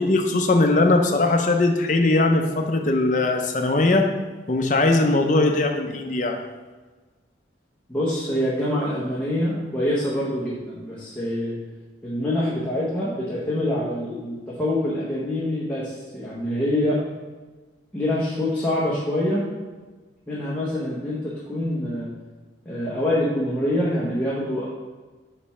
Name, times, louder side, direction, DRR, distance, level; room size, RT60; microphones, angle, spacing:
voice 1, 0.0-4.1 4.5-6.4, left 2 dB, 45° left, 4 dB, 0.6 m, -20 dB
voice 2, 7.9-11.6 12.0-17.0 17.9-19.4 20.3-22.1 22.6-24.7, left 1 dB, 10° left, -8 dB, 1.0 m, -25 dB
5.2 x 4.3 x 5.7 m, 1.3 s
head